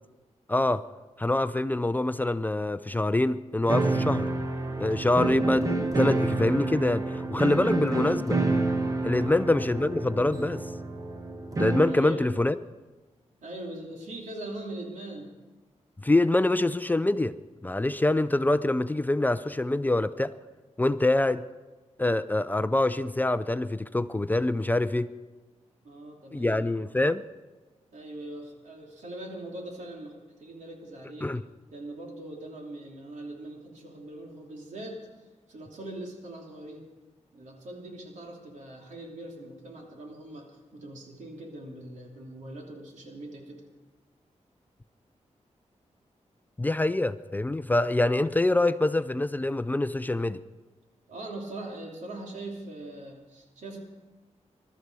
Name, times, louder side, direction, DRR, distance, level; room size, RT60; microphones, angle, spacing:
voice 1, 0.5-0.8 1.2-4.3 4.8-8.4 9.0-10.6 11.6-12.6 16.0-17.3 17.6-20.3 20.8-21.4 22.0-25.1 26.3-27.2 31.2-31.4 46.6-50.4, left 2 dB, 15° left, 13 dB, 0.4 m, -25 dB
sound 1, 3.7-12.1, right 2 dB, 30° right, 1.4 m, -28 dB
voice 2, 11.9-12.2 13.4-15.3 25.8-26.7 27.9-31.4 31.7-36.9 37.3-43.6 51.1-53.8, right 1 dB, 85° right, 0 dB, 3.1 m, -41 dB
22.0 x 12.5 x 4.8 m, 1.2 s
wide cardioid pair, 145°, 12 cm